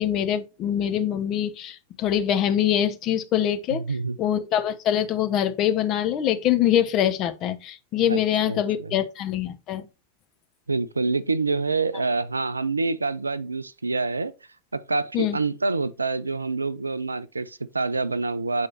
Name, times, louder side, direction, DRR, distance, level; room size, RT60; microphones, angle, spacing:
voice 1, 0.0-3.8 4.2-9.9 15.1-15.4, left 10 dB, 35° left, 0.9 m, -24 dB
voice 2, 3.7-4.2 8.1-8.2 8.5-9.0 10.7-14.3 14.7-18.7, right 3 dB, 80° right, 0.4 m, -26 dB
7.5 x 4.7 x 2.9 m
figure-of-eight pair, 90°, 0 cm